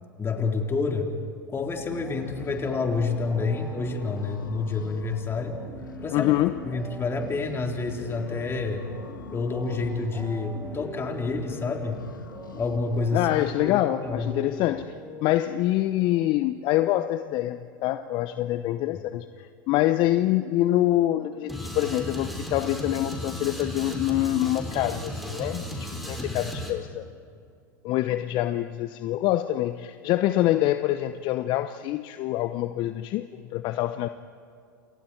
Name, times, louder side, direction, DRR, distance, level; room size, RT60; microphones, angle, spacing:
voice 1, 0.2-1.1 1.5-5.5 6.0-6.3 6.6-8.8 9.3-12.0 12.6-14.3 26.2-26.5, left 4 dB, 25° left, 2 dB, 3.8 m, -28 dB
sound 1, 1.5-15.9, right 2 dB, 20° right, 5.0 m, -43 dB
sound 2, 1.9-13.4, left 5 dB, 85° left, 1.7 m, -43 dB
voice 2, 6.1-6.6 13.1-15.0 15.2-27.0 27.8-34.1, left 14 dB, 50° left, 11 dB, 0.9 m, -25 dB
sound 3, 21.5-26.7, equal, ahead, 6.1 m, -34 dB
29.5 x 28.0 x 4.6 m, 2.4 s
hypercardioid pair, 90°, 10 cm